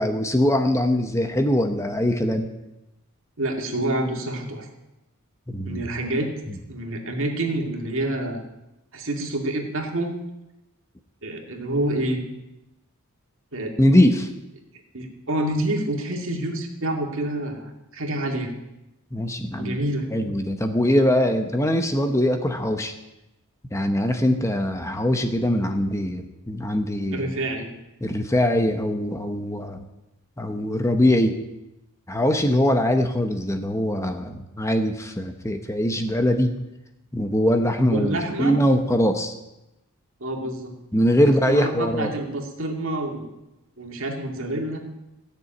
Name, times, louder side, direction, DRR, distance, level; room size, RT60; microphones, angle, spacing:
voice 1, 0.0-2.5 5.5-5.8 13.8-14.3 19.1-19.8 20.1-22.9 23.7-27.3 28.0-29.8 30.4-31.4 32.1-36.5 37.1-39.3 40.9-42.1, equal, 15° left, 6 dB, 0.9 m, -22 dB
voice 2, 3.4-4.7 5.6-6.3 6.7-8.4 8.9-10.2 11.2-12.2 13.5-13.7 14.9-18.5 19.6-20.1 27.1-27.7 37.9-38.6 40.2-40.7 41.2-43.3 43.8-44.8, right 1 dB, 60° right, 2 dB, 2.3 m, -27 dB
16.0 x 6.9 x 9.1 m, 0.95 s
head